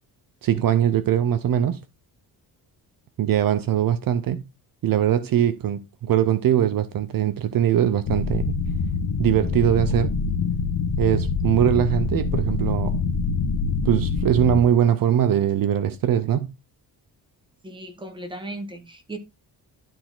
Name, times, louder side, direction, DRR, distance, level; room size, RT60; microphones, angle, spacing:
voice 1, 0.4-1.8 3.2-4.4 4.8-8.6 9.2-10.2 11.0-13.0 13.8-16.5, right 10 dB, 60° right, 0.7 m, -21 dB
sound 1, 8.0-14.6, left 4 dB, 70° left, 1.5 m, -25 dB
voice 2, 17.6-19.2, right 1 dB, 10° right, 1.4 m, -36 dB
12.0 x 4.4 x 3.8 m
wide cardioid pair, 170°, 39 cm